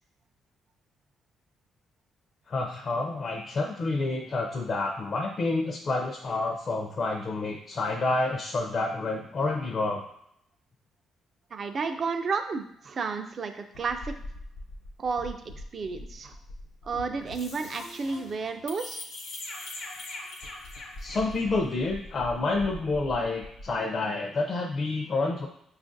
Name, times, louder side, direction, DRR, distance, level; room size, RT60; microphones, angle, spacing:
voice 1, 2.5-10.0 21.0-25.5, left 3 dB, 45° left, 1 dB, 0.5 m, -29 dB
voice 2, 11.5-14.1 15.0-15.4 15.7-16.3 16.8-19.0, right 4 dB, 50° right, 7 dB, 0.4 m, -32 dB
sound 1, 13.7-23.8, left 2 dB, 75° left, 1.0 m, -42 dB
5.5 x 2.4 x 2.6 m, 0.72 s
cardioid pair, 90°, 0 cm